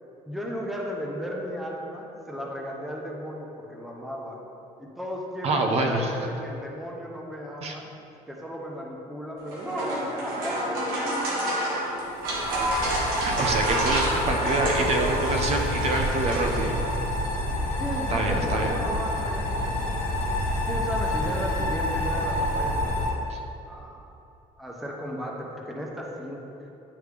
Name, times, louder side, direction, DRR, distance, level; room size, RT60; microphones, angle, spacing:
voice 1, 0.3-4.4 4.8-7.9 8.3-11.5 13.2-13.6 17.8-19.8 20.7-23.1 23.7-24.0 24.6-26.4, equal, ahead, -2 dB, 0.6 m, -35 dB
voice 2, 5.4-6.1 7.6-7.7 12.6-12.7 13.4-16.7 18.1-18.7 23.3-23.4, right 2 dB, 45° right, 2 dB, 0.6 m, -26 dB
sound 1, 9.4-17.0, right 1 dB, 90° right, 1.4 m, -29 dB
sound 2, 12.0-23.1, left 1 dB, 55° left, 1.3 m, -28 dB
9.6 x 3.2 x 3.3 m, 2.9 s
cardioid pair, 150°, 14 cm